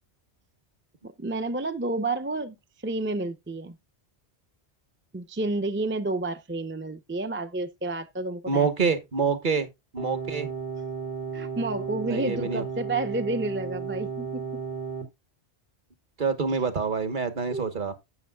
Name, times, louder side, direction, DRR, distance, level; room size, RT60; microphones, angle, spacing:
voice 1, 1.0-3.8 5.1-8.7 11.3-14.6 16.5-16.6 17.5-17.6, right 2 dB, 15° right, 0.5 m, -30 dB
voice 2, 8.5-9.7 9.9-10.5 12.0-12.6 16.2-17.9, right 5 dB, 50° right, 1.2 m, -26 dB
sound 1, 10.0-15.0, right 6 dB, 85° right, 3.4 m, -34 dB
12.0 x 8.3 x 2.3 m
omnidirectional pair, 1.1 m